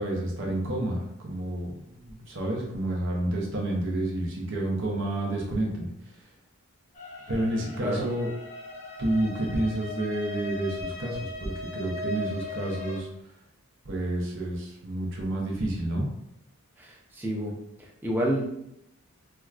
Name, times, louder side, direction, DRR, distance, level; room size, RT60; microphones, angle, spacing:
voice 1, 0.0-5.9 7.3-8.3 9.0-13.1 13.9-16.1, right 1 dB, 55° right, -1 dB, 0.7 m, -29 dB
sound 1, 6.9-13.0, left 2 dB, 30° left, 0.7 m, -38 dB
voice 2, 16.8-17.5 17.8-18.4, right 1 dB, 10° right, -2 dB, 0.5 m, -29 dB
4.5 x 2.2 x 2.4 m, 0.79 s
head